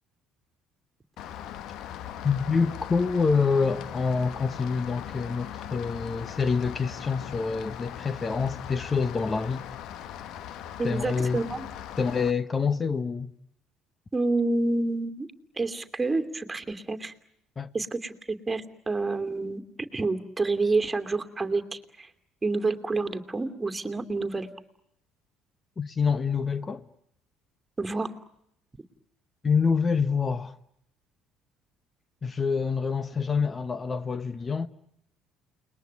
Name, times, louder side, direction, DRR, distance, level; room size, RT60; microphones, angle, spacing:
Rain, 1.2-12.3, left 10 dB, 65° left, 1.3 m, -39 dB
voice 1, 2.2-9.7 10.8-11.4 12.0-13.3 17.6-17.7 25.8-26.8 29.4-30.6 32.2-34.7, left 5 dB, 30° left, 1.0 m, -26 dB
voice 2, 10.8-11.7 14.1-15.3 15.6-17.1 17.7-19.6 19.9-22.1 22.4-24.5 27.8-28.1, right 3 dB, 20° right, 2.7 m, -28 dB
30.0 x 21.0 x 9.5 m
hypercardioid pair, 60°, 0 cm